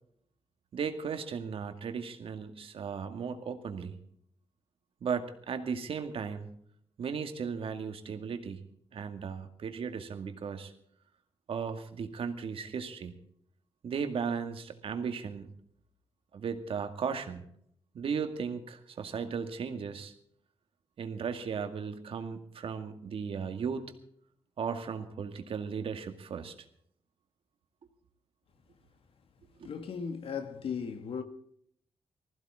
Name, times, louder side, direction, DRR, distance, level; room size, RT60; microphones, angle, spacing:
voice 1, 0.7-4.0 5.0-6.5 7.0-8.6 8.9-10.7 11.5-13.1 13.8-15.5 16.3-17.4 17.9-20.1 21.0-23.9 24.6-26.5 29.6-29.7, right 6 dB, 65° right, 2.1 m, -36 dB
voice 2, 29.5-31.2, left 6 dB, 70° left, 1.9 m, -37 dB
20.0 x 15.5 x 3.7 m
cardioid pair, 95°, 10 cm